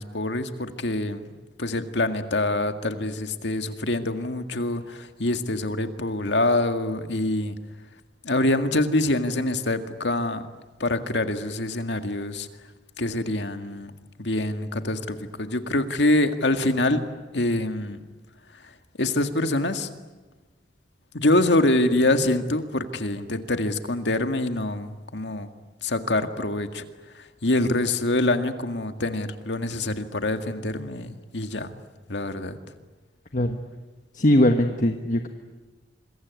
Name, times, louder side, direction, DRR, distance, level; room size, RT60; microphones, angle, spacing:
voice 1, 0.0-1.3 1.6-7.6 8.2-10.4 10.8-12.5 13.0-13.9 14.2-17.0 17.3-18.0 19.0-19.9 21.1-25.5 25.8-26.9 27.2-31.7 32.1-32.6, left 2 dB, 75° left, 7 dB, 2.0 m, -25 dB
voice 2, 34.1-35.3, left 1 dB, 45° left, 6 dB, 1.4 m, -20 dB
26.5 x 23.0 x 9.5 m, 1.3 s
head